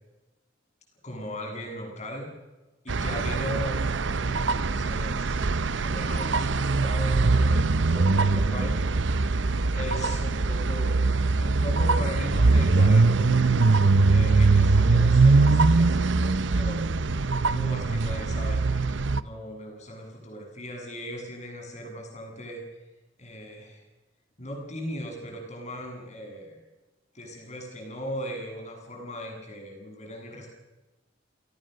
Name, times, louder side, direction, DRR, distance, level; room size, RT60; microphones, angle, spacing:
voice 1, 1.0-2.3 2.8-5.4 5.8-8.9 9.7-11.0 11.4-13.5 14.1-16.9 17.5-22.6 23.2-23.8 24.4-26.6 27.1-30.5, equal, 40° left, 1 dB, 7.8 m, -38 dB
sound 1, 2.9-19.2, right 3 dB, 65° right, 0.7 m, -22 dB
29.0 x 17.5 x 6.7 m, 1.1 s
head